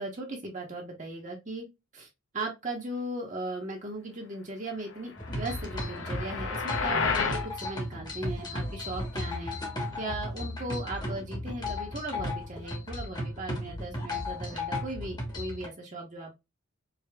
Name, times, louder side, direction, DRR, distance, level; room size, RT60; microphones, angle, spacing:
voice 1, 0.0-1.7 1.9-2.1 2.3-9.6 10.0-16.3, right 2 dB, 35° right, 0.9 m, -37 dB
sound 1, 5.2-7.5, left 4 dB, 60° left, 0.7 m, -31 dB
sound 2, 5.2-15.7, left 2 dB, 20° left, 1.0 m, -35 dB
4.9 x 2.7 x 2.2 m
head